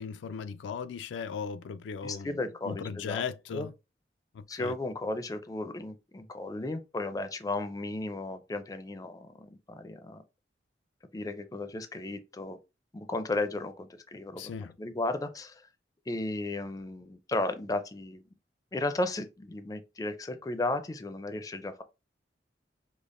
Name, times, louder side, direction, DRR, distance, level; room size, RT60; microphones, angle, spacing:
voice 1, 0.0-3.7 4.3-4.7 14.4-14.7, left 6 dB, 90° left, 0.3 m, -37 dB
voice 2, 2.0-3.2 3.5-3.7 4.5-10.2 11.1-12.6 12.9-14.4 14.8-15.6 16.1-18.2 18.7-21.8, left 2 dB, 20° left, 0.4 m, -34 dB
5.1 x 2.0 x 2.5 m
head